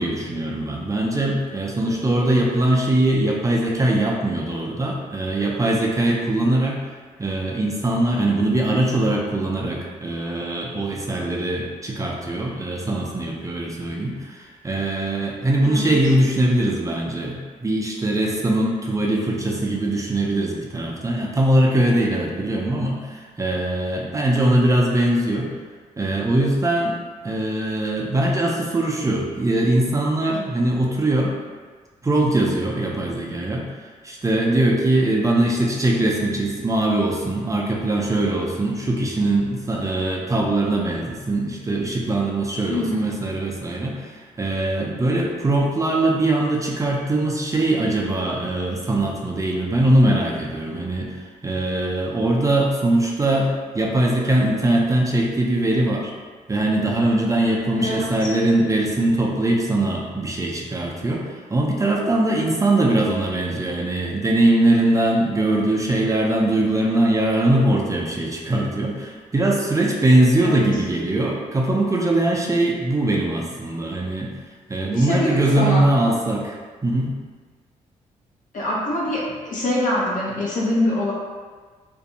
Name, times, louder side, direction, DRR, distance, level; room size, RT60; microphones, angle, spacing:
voice 1, 0.0-6.8 7.2-25.5 26.0-26.9 27.2-31.3 32.0-56.1 56.5-74.3 74.7-76.5 76.8-77.1, right 1 dB, 20° right, -2 dB, 0.5 m, -21 dB
voice 2, 15.6-15.9 42.7-43.1 57.8-58.3 70.4-70.6 74.9-75.9 78.5-81.1, left 1 dB, 60° left, -6 dB, 0.9 m, -24 dB
2.5 x 2.2 x 2.7 m, 1.5 s
supercardioid pair, 60°, 15 cm